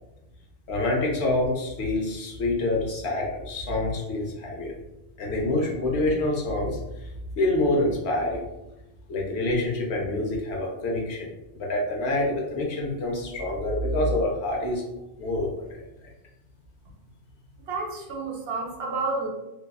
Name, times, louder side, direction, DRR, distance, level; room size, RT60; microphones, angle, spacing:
voice 1, 0.7-4.7 5.2-8.4 9.1-14.8 15.2-15.8, left 2 dB, 80° left, -1 dB, 1.0 m, -27 dB
voice 2, 17.7-19.3, right 3 dB, 70° right, 0 dB, 0.8 m, -30 dB
2.6 x 2.3 x 2.3 m, 0.94 s
omnidirectional pair, 1.1 m